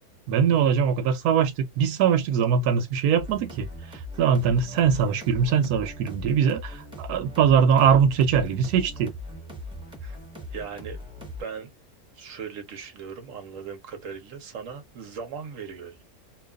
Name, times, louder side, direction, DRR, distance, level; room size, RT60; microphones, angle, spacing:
voice 1, 0.3-3.7 4.2-9.1, right 7 dB, 85° right, 1.1 m, -22 dB
sound 1, 3.2-11.4, left 1 dB, 5° right, 1.0 m, -40 dB
voice 2, 10.5-11.7 12.1-16.0, right 6 dB, 65° right, 1.0 m, -38 dB
2.8 x 2.3 x 2.2 m
omnidirectional pair, 1.6 m